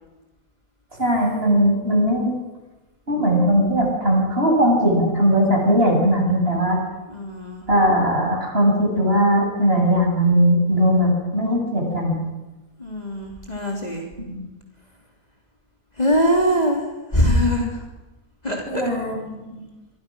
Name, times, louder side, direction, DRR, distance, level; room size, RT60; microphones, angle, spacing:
voice 1, 1.0-2.3 3.1-6.8 7.7-12.2 14.3-14.5 18.7-19.6, equal, 40° right, 0 dB, 7.5 m, -19 dB
voice 2, 7.1-7.6 12.8-14.1 16.0-17.8 18.4-18.9, equal, 25° left, 0 dB, 3.6 m, -22 dB
26.0 x 24.5 x 6.4 m, 1.1 s
omnidirectional pair, 1.6 m